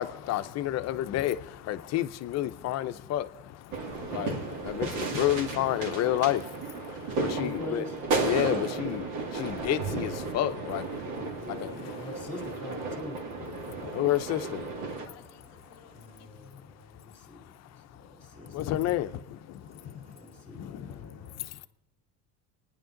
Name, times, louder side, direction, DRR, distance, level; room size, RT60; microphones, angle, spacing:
voice 1, 0.0-7.8 8.2-11.3 11.6-11.9 13.6-15.9 16.4-16.5 17.5-18.1 18.5-20.2 20.5-21.6, left 13 dB, 50° left, 0.7 m, -31 dB
sound 1, 3.7-15.1, right 3 dB, 60° right, 2.2 m, -34 dB
voice 2, 7.3-8.0 11.4-13.4 15.9-18.6 20.0-21.5, equal, 5° left, 2.5 m, -44 dB
voice 3, 15.6-16.0 19.7-20.2, right 2 dB, 25° right, 2.2 m, -58 dB
29.5 x 10.0 x 3.8 m
cardioid pair, 120°, 34 cm